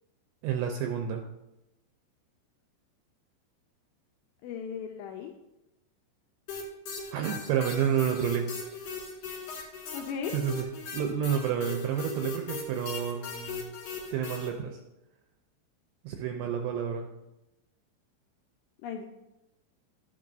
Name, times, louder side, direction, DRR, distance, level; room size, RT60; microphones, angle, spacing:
voice 1, 0.4-1.2 7.1-8.5 10.3-10.7 10.9-13.6 14.1-14.8 16.0-17.1, right 8 dB, 85° right, 3 dB, 2.5 m, -29 dB
voice 2, 4.4-5.3 9.9-10.4 18.8-19.1, left 7 dB, 85° left, 2 dB, 2.5 m, -36 dB
sound 1, 6.5-14.5, left 4 dB, 55° left, 2.8 m, -39 dB
12.0 x 8.7 x 2.6 m, 0.94 s
omnidirectional pair, 5.6 m